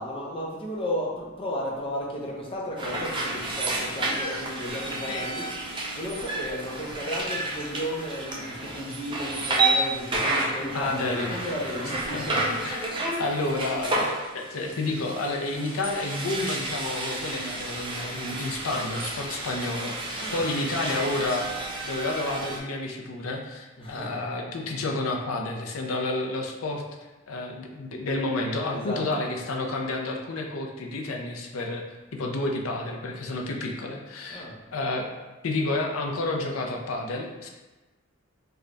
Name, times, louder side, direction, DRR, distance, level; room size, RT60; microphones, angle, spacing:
voice 1, 0.0-12.4 20.1-20.5 23.8-24.3 28.7-29.0 34.3-34.6, equal, 25° left, -3 dB, 0.6 m, -34 dB
sound 1, 2.8-22.6, right 2 dB, 25° right, 0.5 m, -31 dB
voice 2, 10.7-11.5 12.1-12.4 12.6-12.9 13.2-14.1 14.3-21.5 21.8-26.8 27.3-31.8 32.1-34.4 34.7-35.0 35.4-37.5, left 2 dB, 80° left, 1 dB, 0.5 m, -30 dB
3.3 x 2.2 x 3.8 m, 1.1 s
head